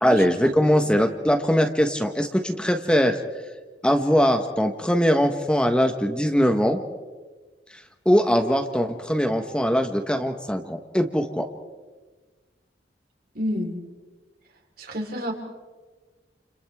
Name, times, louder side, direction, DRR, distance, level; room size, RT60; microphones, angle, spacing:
voice 1, 0.0-3.2 3.8-6.8 7.7-11.5, equal, 5° left, 5 dB, 1.2 m, -21 dB
voice 2, 13.3-13.8 14.8-15.3, equal, 60° right, 1 dB, 4.1 m, -29 dB
30.0 x 29.5 x 3.6 m, 1.3 s
head